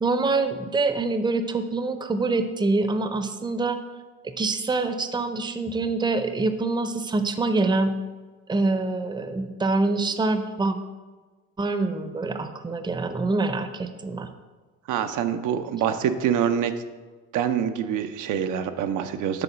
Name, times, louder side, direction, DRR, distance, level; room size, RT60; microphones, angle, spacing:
voice 1, 0.0-3.8 4.2-7.9 8.5-10.8 11.6-14.3, right 3 dB, 15° right, 9 dB, 0.5 m, -25 dB
voice 2, 14.9-16.7 17.3-19.4, right 9 dB, 85° right, 8 dB, 0.6 m, -25 dB
6.9 x 3.9 x 6.0 m, 1.3 s
cardioid pair, 90°, 30 cm